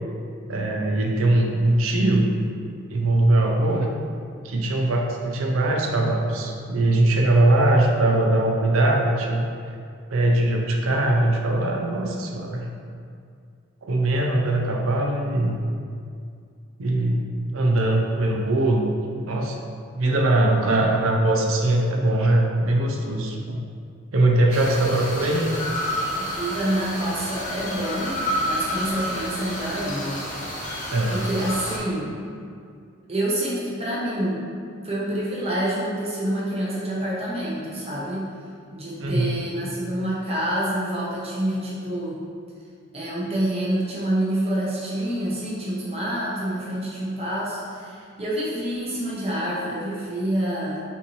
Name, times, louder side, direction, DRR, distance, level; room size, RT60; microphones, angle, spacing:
voice 1, 0.5-2.3 2.9-3.9 4.4-9.5 10.1-12.7 13.8-15.6 16.8-17.3 17.5-19.0 19.2-19.6 20.0-23.6 24.1-25.5 30.9-31.2 39.0-39.4, right 1 dB, 80° right, 1 dB, 0.6 m, -21 dB
sound 1, 24.5-31.8, equal, 35° left, 0.8 m, -30 dB
voice 2, 26.2-30.2 30.6-32.1 33.1-34.4 34.8-38.3 38.7-42.2 42.9-50.8, right 1 dB, 30° right, -6 dB, 0.9 m, -27 dB
5.6 x 2.6 x 3.1 m, 2.3 s
head